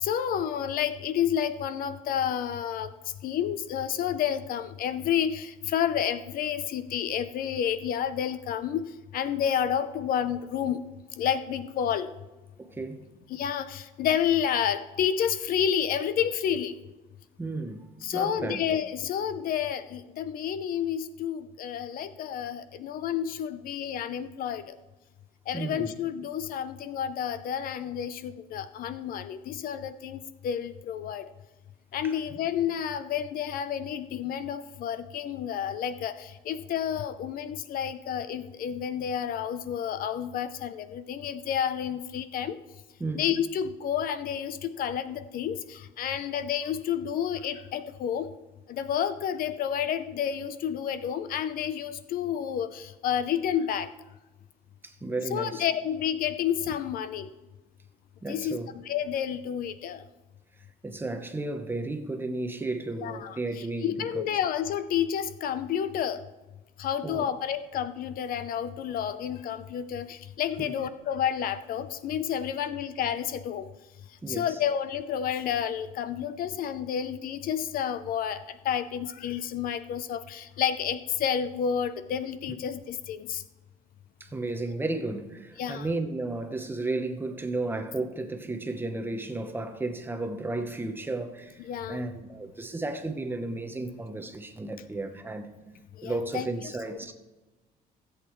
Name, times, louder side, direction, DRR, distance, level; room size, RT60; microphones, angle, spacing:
voice 1, 0.0-2.9 3.2-8.9 9.1-10.8 11.2-12.1 13.3-16.7 18.0-24.6 25.5-30.2 30.4-31.2 31.9-36.1 36.5-42.6 43.1-48.3 48.7-53.9 55.3-57.3 58.3-58.6 58.8-60.0 63.0-63.4 63.8-66.2 66.8-73.6 74.3-78.4 78.6-83.4 85.6-85.9 91.6-92.0 96.0-96.5, left 9 dB, 60° left, 0.6 m, -30 dB
voice 2, 12.6-13.0 17.4-18.6 25.5-25.9 32.0-32.2 43.0-43.2 54.8-55.7 58.2-58.7 60.8-64.2 67.0-67.3 70.6-70.7 74.2-74.5 84.2-91.6 91.9-95.5 96.0-97.1, right 2 dB, 15° right, 0.9 m, -33 dB
16.5 x 8.1 x 3.1 m
cardioid pair, 135°, 16 cm